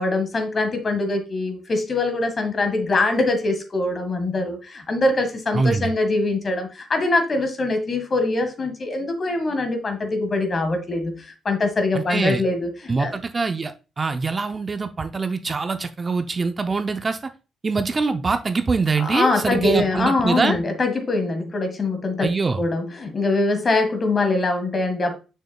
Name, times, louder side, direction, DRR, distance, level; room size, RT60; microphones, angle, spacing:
voice 1, 0.0-13.2 19.0-25.2, left 2 dB, 40° left, 1.7 m, -23 dB
voice 2, 5.5-5.9 11.9-12.4 12.9-17.2 17.6-20.6 22.2-22.6, right 4 dB, 30° right, 0.6 m, -23 dB
6.5 x 6.3 x 2.3 m
cardioid pair, 90°, 0 cm